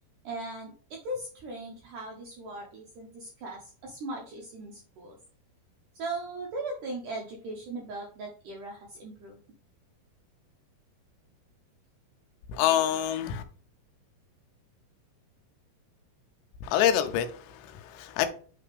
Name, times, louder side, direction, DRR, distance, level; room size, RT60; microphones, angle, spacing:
voice 1, 0.2-5.2 5.9-9.4, right 2 dB, 80° right, 1.8 m, -38 dB
voice 2, 12.5-13.4 16.6-18.3, left 10 dB, 85° left, 2.8 m, -26 dB
8.4 x 3.4 x 3.3 m
omnidirectional pair, 4.9 m